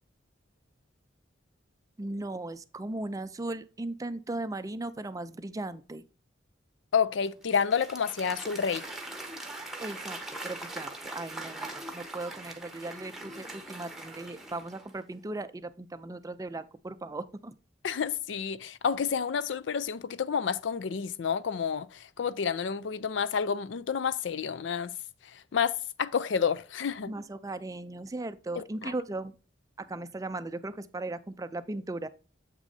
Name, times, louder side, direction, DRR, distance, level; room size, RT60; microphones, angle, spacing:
voice 1, 2.0-6.0 9.8-10.2 10.4-17.5 27.1-29.3 29.8-32.1, right 2 dB, 20° right, 0.4 m, -37 dB
voice 2, 6.9-8.8 17.8-24.9 25.3-27.1 28.6-28.9, left 6 dB, 70° left, 0.4 m, -29 dB
Applause / Crowd, 7.2-15.0, right 2 dB, ahead, 1.0 m, -41 dB
7.5 x 6.1 x 2.7 m
head